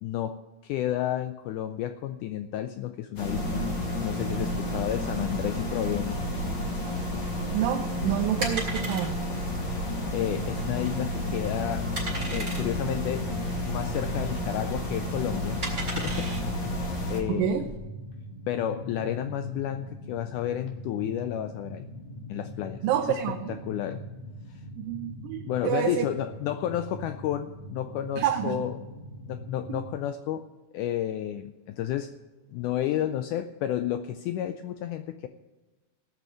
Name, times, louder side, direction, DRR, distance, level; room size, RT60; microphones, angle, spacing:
voice 1, 0.0-3.7 4.0-6.3 10.1-11.9 12.3-15.6 16.0-16.3 16.6-16.7 17.1-17.7 18.5-21.9 22.3-24.0 24.5-24.6 25.4-28.8 29.3-30.5 30.7-32.1 32.5-35.3, left 11 dB, 85° left, 9 dB, 1.8 m, -31 dB
sound 1, 3.2-17.2, left 1 dB, 35° left, 2.4 m, -31 dB
sound 2, 7.1-17.8, right 2 dB, 20° right, 3.8 m, -38 dB
voice 2, 7.5-9.1 17.3-17.7 22.8-23.6 24.8-26.1 28.2-28.6 29.7-29.8, right 11 dB, 80° right, 5 dB, 2.3 m, -28 dB
sound 3, 10.3-29.9, equal, 60° left, 2.5 m, -42 dB
17.5 x 6.1 x 7.6 m, 1.2 s
omnidirectional pair, 4.1 m